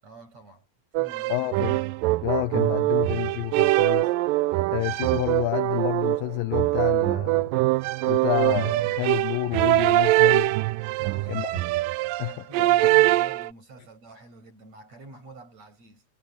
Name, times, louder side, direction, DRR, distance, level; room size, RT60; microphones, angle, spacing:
voice 1, 0.0-0.7 0.9-1.5 10.9-11.4 12.0-16.1, right 2 dB, 40° right, 8.1 m, -47 dB
sound 1, 0.9-13.5, right 18 dB, 80° right, 2.0 m, -23 dB
voice 2, 1.3-1.8 2.2-4.1 4.7-7.5 8.1-10.5 11.3-11.5 12.2-12.9, left 20 dB, 85° left, 2.0 m, -29 dB
omnidirectional pair, 4.5 m